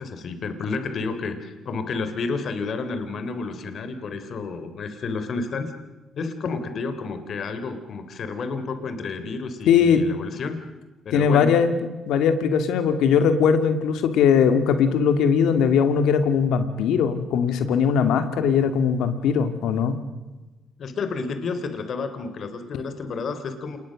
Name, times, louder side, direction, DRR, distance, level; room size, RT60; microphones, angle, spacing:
voice 1, 0.0-5.7 6.1-10.6 11.1-11.6 20.8-23.8, left 4 dB, 60° left, 9 dB, 3.4 m, -30 dB
voice 2, 9.7-10.0 11.1-11.7 12.1-20.0, left 7 dB, 80° left, 9 dB, 2.4 m, -20 dB
28.0 x 20.5 x 6.5 m, 1.1 s
cardioid pair, 75°, 0 cm